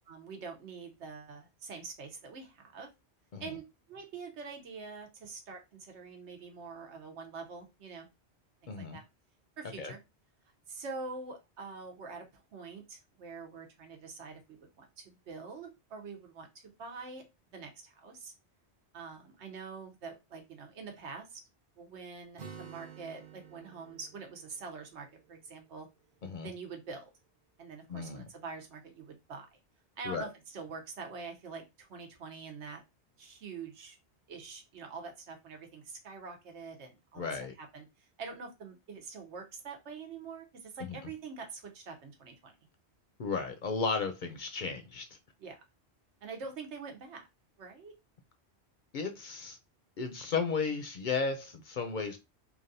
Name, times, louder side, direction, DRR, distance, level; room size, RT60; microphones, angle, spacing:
voice 1, 0.1-2.9 3.4-3.6 3.9-8.1 8.6-9.0 9.6-10.0 10.7-17.2 17.5-18.3 18.9-21.4 21.8-25.9 26.4-27.1 27.6-29.6 30.0-32.8 33.2-34.0 34.3-37.3 37.6-37.9 38.2-42.5 45.4-45.6 46.2-47.2 47.6-47.9, right 4 dB, 90° right, 1.1 m, -45 dB
voice 2, 8.7-9.0 9.8-9.9 26.2-26.5 27.9-28.3 30.0-30.3 37.2-37.5 40.8-41.0 43.2-45.1 48.9-49.6 50.0-52.2, left 5 dB, 60° left, 0.6 m, -34 dB
Acoustic guitar, 22.4-26.1, right 7 dB, 50° right, 0.6 m, -51 dB
3.3 x 2.4 x 2.6 m
omnidirectional pair, 1.1 m